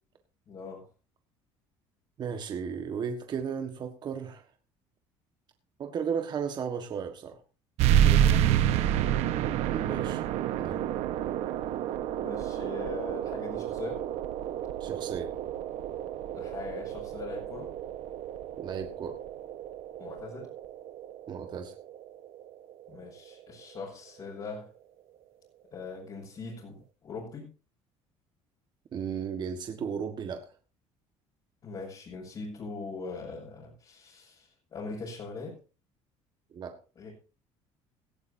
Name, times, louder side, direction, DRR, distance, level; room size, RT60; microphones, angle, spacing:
voice 1, 0.5-0.8 8.0-8.8 12.2-14.1 16.3-17.7 20.0-20.5 22.9-24.7 25.7-27.5 31.6-35.5 36.9-37.1, left 4 dB, 40° left, -4 dB, 6.4 m, -41 dB
voice 2, 2.2-4.4 5.8-7.4 9.7-10.2 10.6-10.8 14.8-15.3 18.6-19.2 21.3-21.7 28.9-30.5 36.5-36.7, right 7 dB, 40° right, 6 dB, 1.5 m, -34 dB
sound 1, 7.8-22.9, right 11 dB, 70° right, 1.2 m, -29 dB
17.5 x 14.5 x 2.7 m, 0.33 s
cardioid pair, 130°, 11 cm